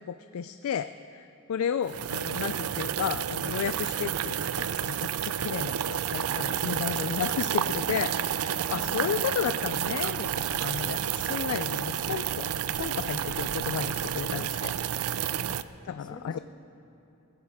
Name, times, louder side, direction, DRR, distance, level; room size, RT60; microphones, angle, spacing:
voice 1, 0.0-12.5 12.8-15.3 15.8-16.4, left 8 dB, 80° left, 11 dB, 0.3 m, -33 dB
sound 1, 1.8-15.6, right 9 dB, 85° right, 0.4 m, -30 dB
voice 2, 8.7-9.0 15.4-16.4, left 1 dB, 20° left, 4 dB, 0.8 m, -47 dB
sound 2, 9.8-15.1, equal, 50° left, 2.1 m, -51 dB
19.5 x 16.0 x 3.6 m, 2.9 s
head